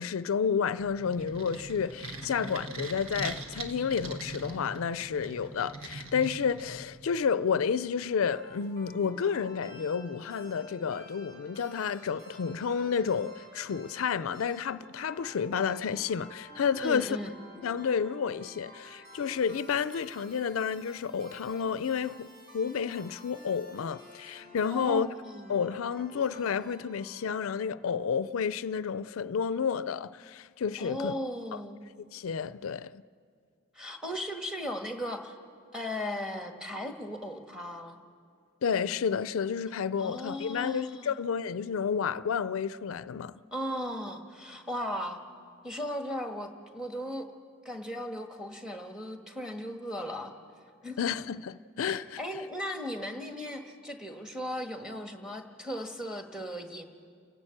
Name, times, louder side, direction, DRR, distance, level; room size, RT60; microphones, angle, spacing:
voice 1, 0.0-17.2 17.6-25.1 25.5-31.1 32.1-32.9 38.6-43.3 51.0-52.2, left 6 dB, 80° left, 0.4 m, -30 dB
sound 1, 0.7-7.1, right 2 dB, 85° right, 1.7 m, -41 dB
sound 2, 8.2-28.1, left 1 dB, 50° right, 5.2 m, -51 dB
voice 2, 16.8-17.4 24.7-25.7 30.8-31.8 33.7-35.3 35.7-38.0 40.0-41.1 43.5-45.2 45.6-47.3 47.6-50.3 50.8-51.2 51.8-56.9, equal, 5° right, 1.3 m, -37 dB
30.0 x 11.0 x 8.8 m
head